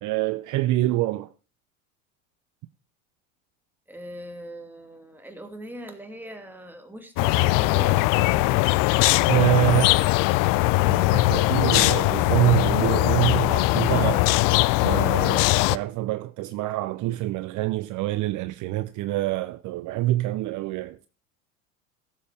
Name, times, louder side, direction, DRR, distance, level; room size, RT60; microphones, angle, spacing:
voice 1, 0.0-1.3 9.3-10.0 10.8-14.4 14.8-21.1, right 15 dB, 45° right, 0.7 m, -26 dB
voice 2, 3.9-8.7 9.9-10.3, equal, 5° right, 2.6 m, -40 dB
sound 1, 7.2-15.8, left 21 dB, 50° left, 0.6 m, -20 dB
15.5 x 7.7 x 4.9 m
hypercardioid pair, 85°, 41 cm